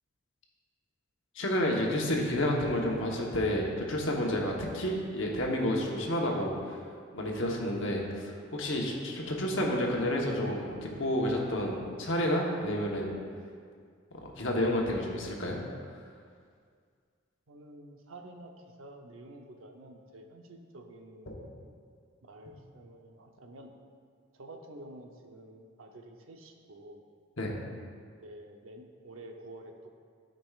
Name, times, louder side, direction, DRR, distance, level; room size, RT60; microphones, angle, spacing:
voice 1, 1.3-13.1 14.1-15.6 15.9-16.1 21.3-21.4 27.4-27.6, left 1 dB, 65° left, -1 dB, 1.0 m, -30 dB
voice 2, 17.5-21.4 22.2-23.7 24.3-27.0 28.2-29.9, right 1 dB, 80° right, 3 dB, 0.7 m, -49 dB
12.0 x 5.2 x 2.4 m, 2.1 s
head